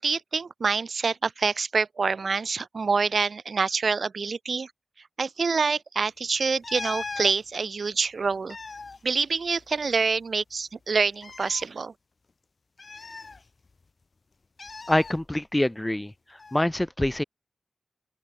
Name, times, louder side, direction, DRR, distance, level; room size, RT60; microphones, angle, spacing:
voice 1, 0.0-4.7 5.2-8.6 9.0-11.9, right 4 dB, 60° right, 1.5 m, -26 dB
sound 1, 6.6-7.4 8.3-10.0 10.2-10.3 11.1-11.6 12.8-13.8 14.6-15.1 16.4-16.6, left 4 dB, 45° left, 7.8 m, -39 dB
voice 2, 14.9-16.1 16.5-17.2, left 1 dB, 10° left, 5.6 m, -25 dB
open air
wide cardioid pair, 100°, 0 cm